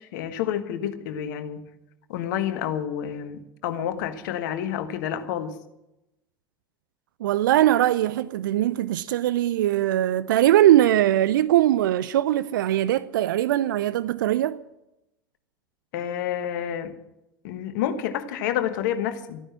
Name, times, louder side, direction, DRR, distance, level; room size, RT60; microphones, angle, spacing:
voice 1, 0.0-1.6 2.1-5.5 15.9-16.9 17.4-19.4, left 10 dB, 60° left, 1.3 m, -29 dB
voice 2, 7.2-14.6, right 13 dB, 65° right, 0.4 m, -21 dB
14.0 x 10.0 x 7.4 m
figure-of-eight pair, 80°, 11 cm